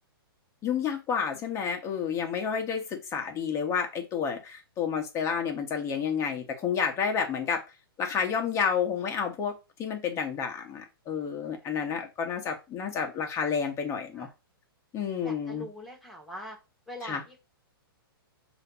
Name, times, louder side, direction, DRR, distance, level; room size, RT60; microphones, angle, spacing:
voice 1, 0.6-7.6 8.0-9.5 9.8-14.3 14.9-15.7 17.0-17.2, left 6 dB, 20° left, 3 dB, 1.5 m, -30 dB
voice 2, 11.6-12.0 14.1-14.3 15.2-16.6 16.9-17.4, left 1 dB, ahead, -1 dB, 1.7 m, -43 dB
5.5 x 3.1 x 5.6 m, 0.27 s
hypercardioid pair, 135°, 13 cm